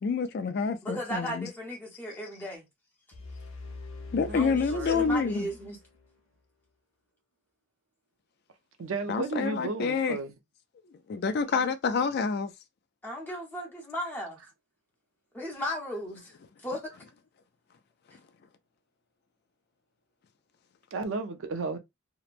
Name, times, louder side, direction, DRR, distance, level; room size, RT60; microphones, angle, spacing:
voice 1, 0.0-1.5 4.1-5.5 9.1-10.2 11.1-12.5, left 5 dB, 50° left, 0.3 m, -28 dB
voice 2, 0.8-2.7 4.3-5.8 13.0-14.4 15.3-16.3 16.6-16.9, equal, 10° left, 0.8 m, -36 dB
sound 1, 3.1-6.2, left 3 dB, 70° left, 0.7 m, -43 dB
voice 3, 4.2-5.0 8.8-10.3 13.3-13.4 20.9-21.8, right 3 dB, 70° right, 0.5 m, -34 dB
2.8 x 2.1 x 2.4 m
head